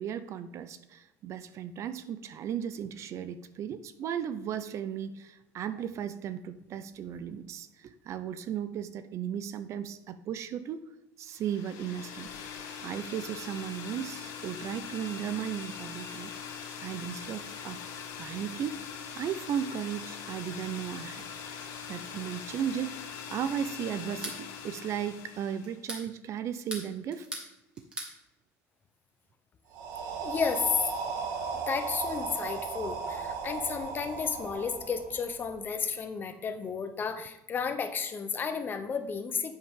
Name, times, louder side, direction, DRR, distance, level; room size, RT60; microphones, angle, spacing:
voice 1, 0.0-10.9 11.2-12.3 12.8-16.3 16.8-17.8 18.2-21.3 21.9-27.3, right 9 dB, 45° right, 12 dB, 0.6 m, -36 dB
sound 1, 11.3-25.8, left 7 dB, 70° left, 2.4 m, -42 dB
sound 2, 24.0-24.4 25.6-26.1 26.5-27.5 27.7-28.1, right 1 dB, 15° right, 2.5 m, -39 dB
sound 3, 29.7-35.6, right 5 dB, 70° right, 1.8 m, -36 dB
voice 2, 30.2-30.7 31.7-39.5, left 6 dB, 30° left, 9 dB, 0.9 m, -33 dB
10.0 x 8.6 x 3.7 m, 0.93 s
cardioid pair, 135°, 7 cm